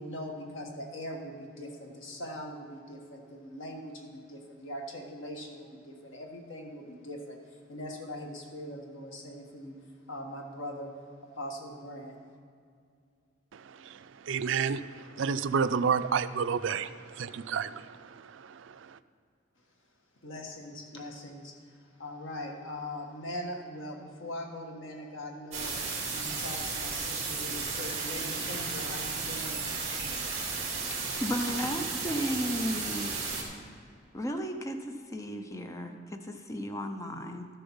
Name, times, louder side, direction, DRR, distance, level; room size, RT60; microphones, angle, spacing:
voice 1, 0.0-10.9 11.2-12.2 20.2-25.8 26.1-29.7 30.9-31.2 31.6-31.7, left 1 dB, 75° left, 1 dB, 1.6 m, -41 dB
voice 2, 13.5-19.0, right 6 dB, 70° right, 13 dB, 0.4 m, -31 dB
sound 1, 25.5-33.4, right 4 dB, 35° right, 2.5 m, -34 dB
voice 3, 31.2-33.4 34.1-37.5, equal, 15° left, 5 dB, 0.6 m, -34 dB
13.0 x 6.9 x 5.6 m, 2.3 s
head